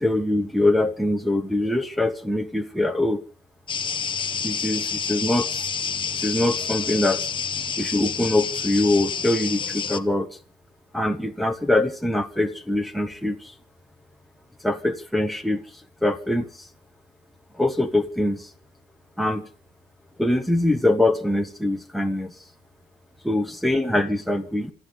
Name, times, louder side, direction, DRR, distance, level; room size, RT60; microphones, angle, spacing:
voice 1, 0.0-3.2 4.4-5.7 6.2-7.3 7.8-10.3 10.9-13.4 14.6-15.6 16.0-16.5 17.6-18.5 19.2-19.5 20.2-22.3 23.2-24.7, left 1 dB, ahead, 5 dB, 1.3 m, -23 dB
sound 1, 3.7-10.0, left 6 dB, 25° left, 0.9 m, -28 dB
27.0 x 10.0 x 5.3 m, 0.41 s
cardioid pair, 170°, 18 cm